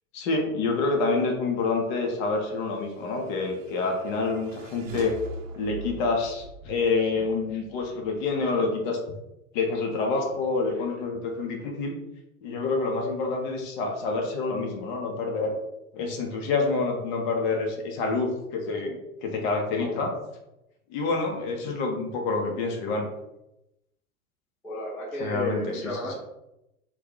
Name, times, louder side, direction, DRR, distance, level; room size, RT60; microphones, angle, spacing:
voice 1, 0.1-5.1 5.6-9.0 9.5-11.9 12.4-15.5 15.9-20.1 20.9-23.1 25.2-26.2, left 3 dB, 35° left, 2 dB, 0.7 m, -27 dB
sound 1, 2.8-8.4, right 2 dB, 60° right, 0.6 m, -43 dB
voice 2, 24.6-26.2, equal, 5° left, -7 dB, 0.5 m, -32 dB
2.7 x 2.3 x 3.7 m, 0.88 s
figure-of-eight pair, 100°, 43 cm